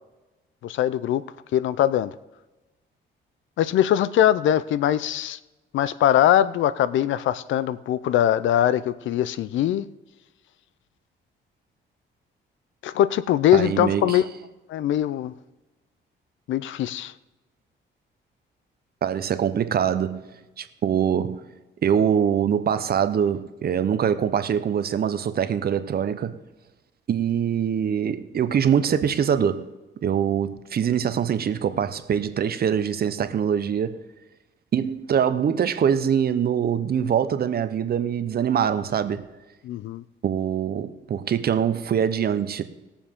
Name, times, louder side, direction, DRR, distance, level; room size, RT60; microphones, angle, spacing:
voice 1, 0.6-1.2 1.5-2.1 3.6-5.4 5.7-9.9 12.8-14.3 14.7-15.3 16.5-17.1 39.6-40.0, left 11 dB, 75° left, 0.5 m, -21 dB
voice 2, 13.5-14.2 19.0-20.3 20.6-21.4 21.8-26.4 27.1-29.7 30.0-34.0 34.7-39.2 40.2-42.6, right 8 dB, 50° right, 0.8 m, -23 dB
19.5 x 7.1 x 3.7 m
cardioid pair, 90°, 20 cm